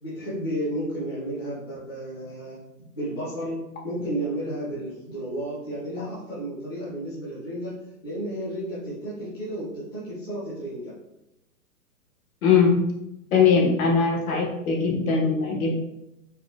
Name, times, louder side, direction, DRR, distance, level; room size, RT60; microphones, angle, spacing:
voice 1, 0.0-2.6 2.9-7.7 8.0-10.9, right 1 dB, 15° left, -10 dB, 0.4 m, -32 dB
voice 2, 12.4-12.8 13.3-15.7, left 5 dB, 60° left, 0 dB, 1.0 m, -20 dB
4.4 x 2.0 x 2.3 m, 0.87 s
hypercardioid pair, 155°, 48 cm